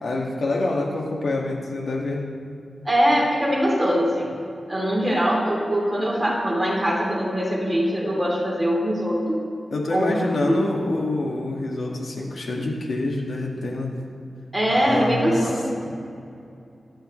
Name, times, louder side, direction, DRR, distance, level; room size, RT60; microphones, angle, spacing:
voice 1, 0.0-2.3 9.7-14.0 14.7-15.5 15.8-15.9, left 2 dB, 75° left, -2 dB, 2.0 m, -27 dB
voice 2, 2.8-4.3 4.7-9.4 9.9-10.6 14.5-15.8, equal, 10° right, -4 dB, 3.2 m, -22 dB
24.5 x 10.0 x 3.3 m, 2.6 s
wide cardioid pair, 150°, 0 cm